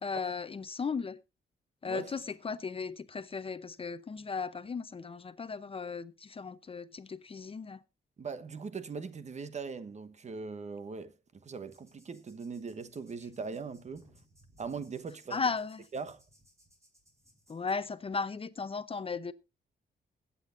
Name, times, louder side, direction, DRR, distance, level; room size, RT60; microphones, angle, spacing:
voice 1, 0.0-1.2 1.8-7.8 15.3-15.8 17.5-19.3, left 5 dB, 30° left, 0.7 m, -36 dB
voice 2, 8.2-14.1 14.6-15.5 15.9-16.2, right 5 dB, 40° right, 1.2 m, -40 dB
sound 1, 11.7-17.8, right 1 dB, 15° right, 5.0 m, -65 dB
21.5 x 8.5 x 2.6 m
cardioid pair, 100°, 18 cm